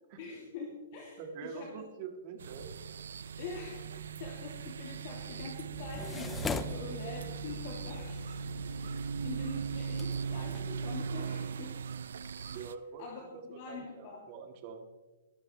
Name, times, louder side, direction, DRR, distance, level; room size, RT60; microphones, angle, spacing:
voice 1, 0.2-1.7 3.4-8.4 8.7-11.8 12.4-12.7 13.0-14.3, left 4 dB, 45° left, -2 dB, 3.1 m, -45 dB
voice 2, 1.2-2.7 12.5-13.1 13.3-14.9, right 6 dB, 35° right, 4 dB, 2.1 m, -45 dB
sound 1, 2.4-12.7, right 6 dB, 85° right, 0.6 m, -39 dB
sound 2, 5.7-11.0, left 5 dB, 10° left, 0.6 m, -43 dB
21.5 x 12.5 x 3.4 m, 1.2 s
hypercardioid pair, 160°, 0 cm